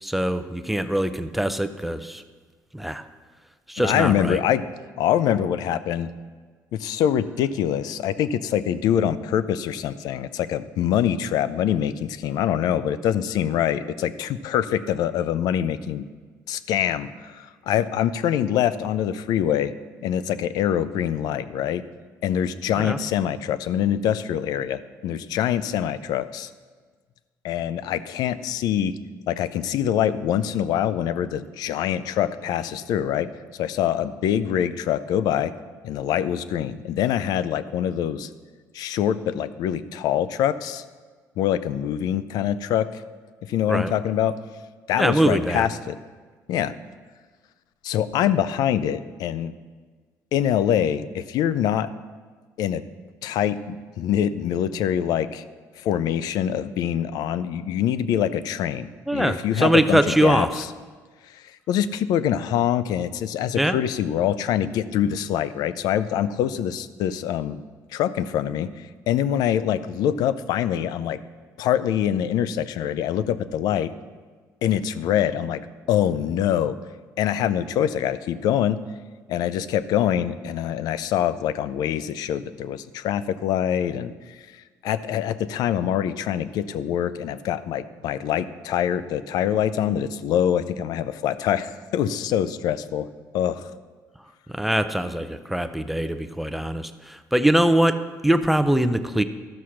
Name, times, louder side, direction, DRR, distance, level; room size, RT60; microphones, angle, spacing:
voice 1, 0.0-2.2 2.7-3.0 3.7-4.4 22.8-23.0 43.7-43.9 45.0-45.7 59.1-60.5 63.6-63.8 94.5-99.2, right 1 dB, ahead, 10 dB, 0.5 m, -22 dB
voice 2, 3.8-4.6 5.0-6.1 6.7-16.0 16.5-19.7 20.0-21.8 22.2-26.5 27.4-29.0 29.3-35.5 35.8-38.3 38.7-40.8 41.4-43.0 43.4-44.4 44.9-46.0 46.5-46.7 47.8-49.5 50.3-51.9 52.6-52.8 53.2-55.4 55.8-60.7 61.2-67.6 67.9-71.2 71.6-73.9 74.6-75.6 75.9-76.8 77.2-78.8 79.3-93.7, left 10 dB, 80° left, 15 dB, 0.5 m, -24 dB
12.5 x 6.3 x 5.8 m, 1.5 s
cardioid pair, 105°, 7 cm